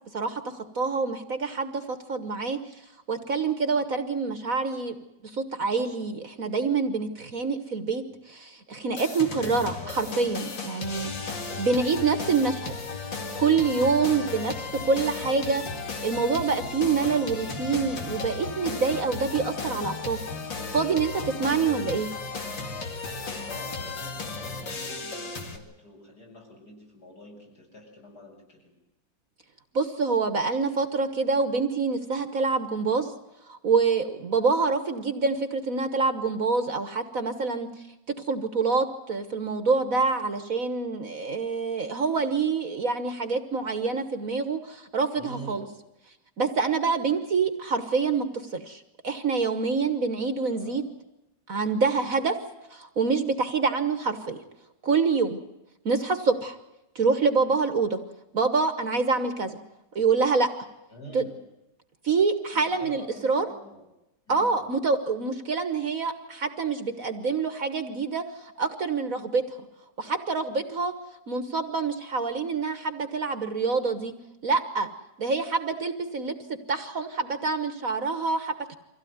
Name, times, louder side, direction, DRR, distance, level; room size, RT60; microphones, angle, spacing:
voice 1, 0.1-2.6 3.1-4.9 5.2-8.0 8.3-11.1 11.6-12.8 13.4-14.5 14.8-15.6 16.0-20.2 20.7-22.1 29.7-33.1 33.5-37.7 38.3-45.7 46.4-48.2 48.5-50.8 51.5-52.4 52.7-54.4 54.8-55.4 55.8-56.6 56.9-58.0 58.3-59.6 59.9-60.5 61.1-61.2 62.0-63.5 64.3-69.6 70.0-70.9 71.3-74.1 74.4-74.9 75.2-76.3 76.7-78.8, right 4 dB, 50° right, 9 dB, 1.6 m, -26 dB
sound 1, 9.0-25.6, left 4 dB, 75° left, 3.0 m, -35 dB
voice 2, 9.8-10.3 23.1-28.7 45.1-45.7 50.5-51.0 51.9-52.1 60.9-61.4 62.5-63.9 64.3-64.6, equal, 55° left, -1 dB, 8.0 m, -46 dB
24.5 x 16.0 x 9.5 m, 0.96 s
omnidirectional pair, 2.0 m